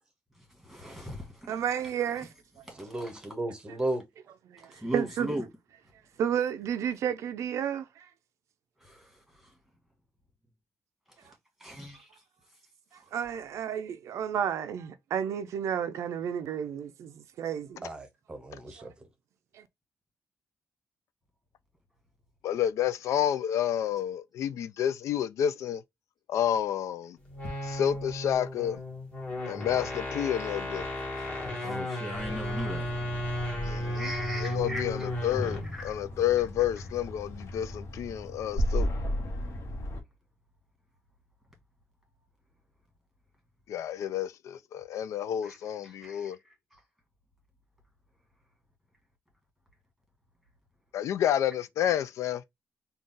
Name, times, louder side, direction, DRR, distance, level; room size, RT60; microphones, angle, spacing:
voice 1, 0.6-1.6 2.7-3.1 4.7-5.5 8.8-9.1 11.2-11.3 11.6-12.1 31.2-31.3 31.5-32.9 33.9-35.1 35.7-36.0 45.4-45.6 45.8-46.3 46.7-46.8, right 1 dB, ahead, 1.7 m, -38 dB
voice 2, 1.5-2.3 4.5-5.3 6.2-8.1 13.1-17.8 18.8-18.9 19.5-19.6, right 8 dB, 70° right, 0.4 m, -32 dB
voice 3, 2.7-4.0 17.8-18.9, right 1 dB, 15° right, 0.8 m, -34 dB
voice 4, 22.4-25.8 26.3-27.2 27.6-28.8 29.5-30.9 33.6-34.1 34.4-38.9 43.7-46.4 50.9-52.4, left 10 dB, 75° left, 0.3 m, -30 dB
sound 1, 27.3-35.8, left 1 dB, 20° left, 1.4 m, -34 dB
sound 2, 32.1-40.0, equal, 55° left, 1.1 m, -35 dB
3.8 x 2.3 x 3.7 m
wide cardioid pair, 165°, 5 cm